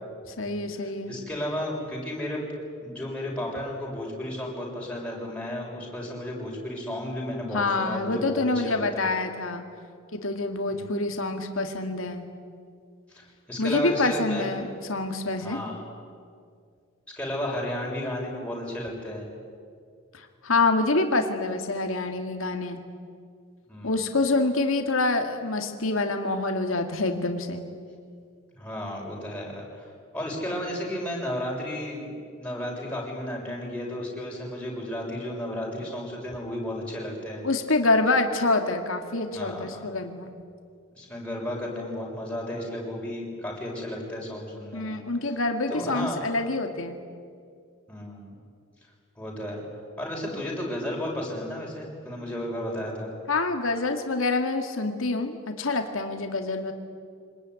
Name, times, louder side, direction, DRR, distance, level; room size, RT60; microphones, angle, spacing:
voice 1, 0.4-1.1 7.5-9.6 10.1-12.3 13.6-15.6 20.4-22.8 23.8-27.6 37.4-40.3 44.7-47.0 53.3-56.7, left 3 dB, 75° left, 5 dB, 2.3 m, -26 dB
voice 2, 1.1-2.4 2.8-8.8 10.7-10.9 13.1-14.5 15.4-15.8 17.2-19.3 23.7-24.0 28.6-29.8 30.1-37.4 39.3-39.8 40.9-45.0 45.7-46.2 47.9-48.3 49.2-49.6 50.0-53.1, left 1 dB, 5° left, -3 dB, 6.9 m, -33 dB
25.5 x 20.0 x 9.8 m, 2.2 s
head